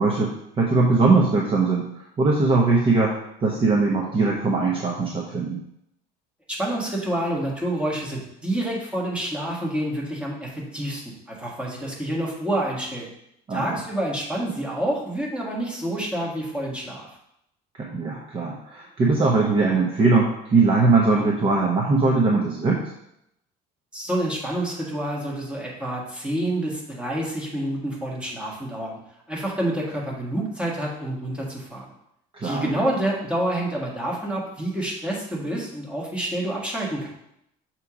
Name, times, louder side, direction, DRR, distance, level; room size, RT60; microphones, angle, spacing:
voice 1, 0.0-1.9 2.2-5.6 13.5-13.8 17.8-22.8 32.3-32.9, right 3 dB, 30° right, -2 dB, 0.9 m, -21 dB
voice 2, 6.5-13.1 13.5-17.1 23.9-29.0 29.3-31.9 32.4-37.1, right 1 dB, 5° right, -3 dB, 1.5 m, -28 dB
6.6 x 3.0 x 4.9 m, 0.77 s
cardioid pair, 130°, 18 cm